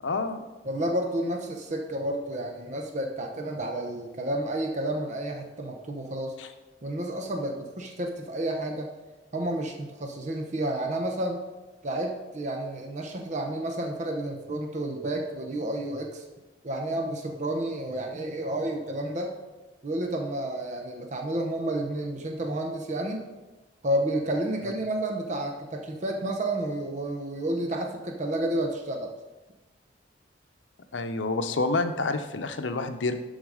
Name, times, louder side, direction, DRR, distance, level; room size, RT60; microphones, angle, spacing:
voice 1, 0.0-0.4 6.4-6.5 24.6-24.7 30.9-33.2, left 3 dB, 80° left, 8 dB, 0.7 m, -28 dB
voice 2, 0.6-6.4 6.8-8.9 9.3-11.4 11.8-16.2 16.6-19.3 19.8-23.3 23.8-29.1, right 1 dB, 40° right, 3 dB, 0.8 m, -30 dB
11.5 x 4.0 x 4.8 m, 1.1 s
head